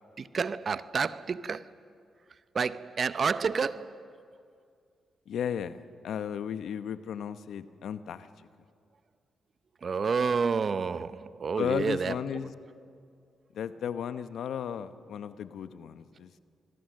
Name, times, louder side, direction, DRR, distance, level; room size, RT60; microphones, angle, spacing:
voice 1, 0.2-1.7 2.5-4.2 9.8-12.2, right 5 dB, 50° right, 15 dB, 0.7 m, -29 dB
voice 2, 5.3-8.3 11.6-12.5 13.5-16.4, left 8 dB, 75° left, 12 dB, 0.8 m, -34 dB
28.0 x 21.5 x 6.5 m, 2.3 s
supercardioid pair, 50°, 0 cm